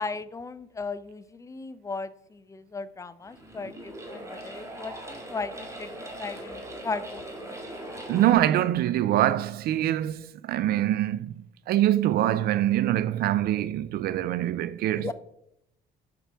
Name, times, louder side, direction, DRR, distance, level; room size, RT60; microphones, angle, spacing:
voice 1, 0.0-5.9 6.2-7.6 14.9-15.1, left 4 dB, 20° left, 0.5 m, -36 dB
sound 1, 3.2-8.3, right 1 dB, 15° right, 1.9 m, -40 dB
voice 2, 8.1-11.3 11.7-15.1, right 13 dB, 65° right, 0.4 m, -24 dB
7.4 x 6.8 x 3.4 m
cardioid pair, 110°, 17 cm